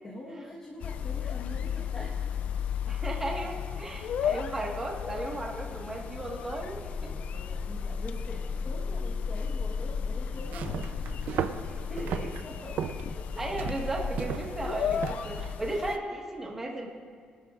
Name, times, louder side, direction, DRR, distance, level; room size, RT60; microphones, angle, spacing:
voice 1, 0.0-2.2 7.0-13.3, left 1 dB, 25° left, -5 dB, 1.3 m, -44 dB
sound 1, 0.8-16.0, left 7 dB, 55° left, 0.5 m, -34 dB
voice 2, 2.8-7.1 13.4-16.9, right 2 dB, 15° right, -2 dB, 1.6 m, -35 dB
sound 2, 10.4-15.5, right 8 dB, 70° right, 0.6 m, -36 dB
23.5 x 12.0 x 2.5 m, 2.1 s
cardioid pair, 180°, 3 cm